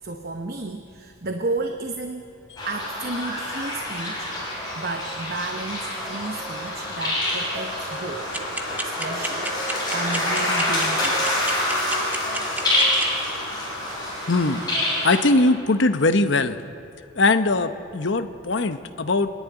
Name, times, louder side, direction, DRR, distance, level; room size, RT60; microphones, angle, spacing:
voice 1, 0.0-2.3 2.7-4.3 4.7-8.3 8.7-9.6 9.9-11.6, right 3 dB, 45° right, 5 dB, 0.9 m, -32 dB
sound 1, 2.6-15.2, left 1 dB, 20° left, 6.5 m, -26 dB
sound 2, 8.3-13.0, right 1 dB, 10° right, 1.0 m, -28 dB
voice 2, 14.3-14.6 15.0-16.6 17.2-19.3, left 2 dB, 60° left, 9 dB, 0.8 m, -21 dB
26.5 x 11.0 x 9.6 m, 2.6 s
head